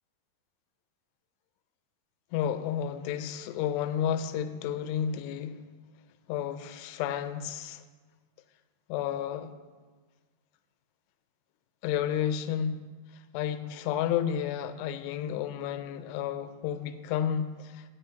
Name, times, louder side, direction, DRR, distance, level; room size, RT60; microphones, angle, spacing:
voice 1, 2.3-5.5 6.3-7.8 8.9-9.5 11.8-12.9 13.3-17.8, left 9 dB, 85° left, 10 dB, 2.7 m, -31 dB
8.3 x 5.7 x 8.0 m, 1.4 s
omnidirectional pair, 4.8 m